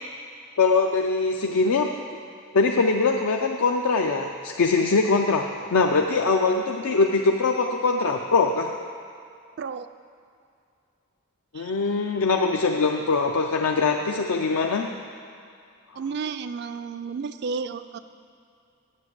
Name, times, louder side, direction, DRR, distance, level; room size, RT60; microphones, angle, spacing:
voice 1, 0.6-2.2 2.5-8.7 11.5-14.9, left 4 dB, 75° left, 3 dB, 0.5 m, -22 dB
voice 2, 9.6-9.9 11.5-11.7 16.0-18.0, right 5 dB, 50° right, 11 dB, 0.3 m, -32 dB
7.6 x 7.5 x 8.2 m, 2.4 s
head